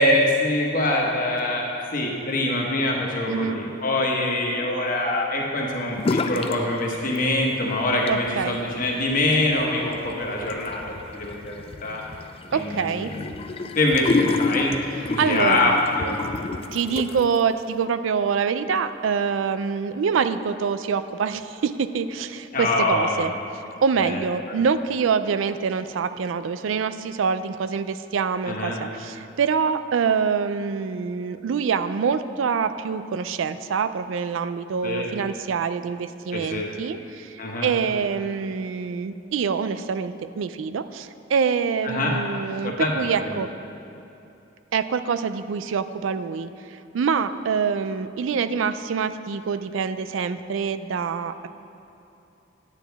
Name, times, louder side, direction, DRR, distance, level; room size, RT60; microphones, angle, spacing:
voice 1, 0.0-12.0 12.5-13.3 13.7-14.7 15.1-16.2 22.5-23.3 24.0-24.2 24.5-24.6 28.5-28.8 34.8-35.1 36.3-36.7 37.4-37.7 41.8-42.2 42.6-42.9 43.2-43.4, left 2 dB, 45° left, -1 dB, 1.2 m, -24 dB
voice 2, 3.3-3.6 8.1-8.6 12.5-13.1 15.2-15.8 16.7-23.3 23.8-43.5 44.7-51.5, right 6 dB, 90° right, 12 dB, 0.4 m, -25 dB
sound 1, 6.0-6.6 6.9-7.5 7.9-17.4, left 3 dB, 30° left, 0.3 m, -29 dB
9.1 x 9.0 x 3.5 m, 2.9 s
head